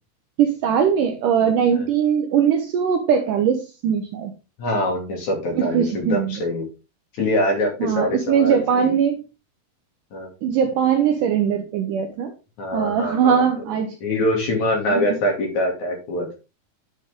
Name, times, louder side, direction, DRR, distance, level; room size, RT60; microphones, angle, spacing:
voice 1, 0.4-4.3 5.5-6.4 7.8-9.2 10.4-12.3 12.7-14.0 14.9-15.0, right 7 dB, 70° right, 2.1 m, -20 dB
voice 2, 4.6-6.7 7.1-8.9 10.1-10.3 12.6-13.4 14.0-16.4, left 1 dB, 50° left, 3.6 m, -24 dB
10.0 x 6.1 x 3.7 m
omnidirectional pair, 4.6 m